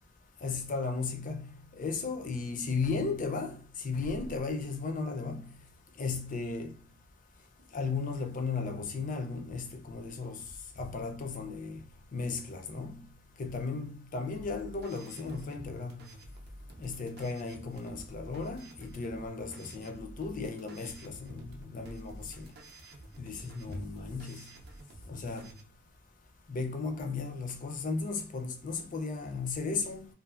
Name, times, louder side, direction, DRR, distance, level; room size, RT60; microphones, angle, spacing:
voice 1, 0.4-3.6 3.8-5.5 6.0-6.7 7.7-10.4 10.8-11.8 12.1-13.0 13.4-16.1 16.8-22.5 23.2-24.4 25.1-25.5 26.5-30.1, left 4 dB, 40° left, 0.4 m, -35 dB
sound 1, 14.4-25.6, right 1 dB, 50° right, 0.5 m, -50 dB
2.5 x 2.4 x 2.4 m
head